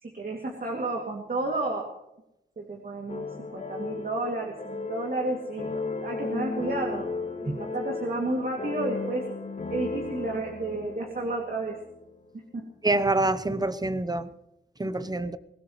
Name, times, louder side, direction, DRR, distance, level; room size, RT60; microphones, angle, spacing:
voice 1, 0.0-1.9 2.6-7.1 7.3-9.2 9.7-11.8 12.5-12.6, right 2 dB, 50° right, 1 dB, 2.6 m, -31 dB
sound 1, 3.1-12.1, left 3 dB, 40° left, 2.3 m, -35 dB
voice 2, 12.8-14.3 14.8-15.4, right 2 dB, 20° right, 13 dB, 0.9 m, -26 dB
22.5 x 18.5 x 3.2 m, 0.86 s
wide cardioid pair, 100°, 19 cm